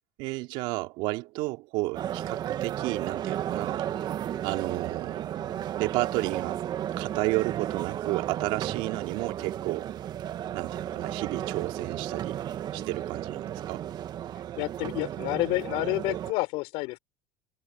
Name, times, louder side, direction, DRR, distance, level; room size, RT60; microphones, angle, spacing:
voice 1, 0.2-6.7 7.0-9.9 10.5-12.4 12.7-13.8, right 22 dB, 70° right, 2.8 m, -32 dB
sound 1, 1.9-16.3, right 11 dB, 50° right, 2.0 m, -34 dB
voice 2, 14.6-17.0, left 24 dB, 70° left, 6.1 m, -29 dB
hypercardioid pair, 75°, 9 cm